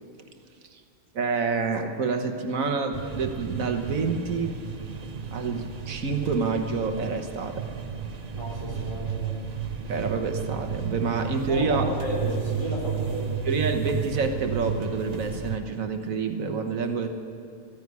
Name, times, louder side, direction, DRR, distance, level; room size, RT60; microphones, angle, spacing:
voice 1, 1.1-4.6 4.9-5.0 5.3-7.7 9.9-11.9 13.4-17.1, right 4 dB, 80° right, 5 dB, 1.6 m, -28 dB
sound 1, 2.9-15.6, right 6 dB, 40° right, 0.7 m, -33 dB
voice 2, 8.3-9.3 11.4-13.4, equal, 25° left, -4 dB, 4.1 m, -33 dB
14.5 x 10.5 x 9.5 m, 2.5 s
omnidirectional pair, 1.4 m